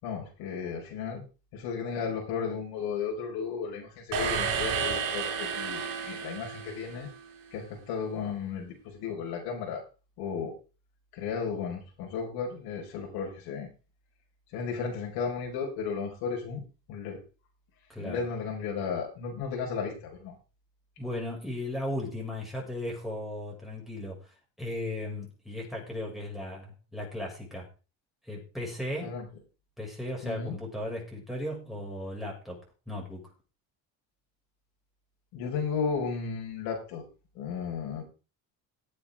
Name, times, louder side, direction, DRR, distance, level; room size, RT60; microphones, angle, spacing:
voice 1, 0.0-1.2 1.5-7.1 7.5-9.8 10.2-10.5 11.1-13.7 14.5-16.6 16.9-17.2 18.0-20.3 29.0-29.3 30.2-30.6 35.3-37.0 37.3-38.0, left 6 dB, 75° left, -1 dB, 5.6 m, -34 dB
sound 1, 4.1-7.3, right 6 dB, 65° right, 5.1 m, -32 dB
voice 2, 17.9-18.2 21.0-24.2 24.6-27.7 28.3-29.2 29.8-32.6 32.9-33.3, left 1 dB, ahead, -3 dB, 6.5 m, -36 dB
18.0 x 8.7 x 3.8 m, 0.33 s
cardioid pair, 125°, 38 cm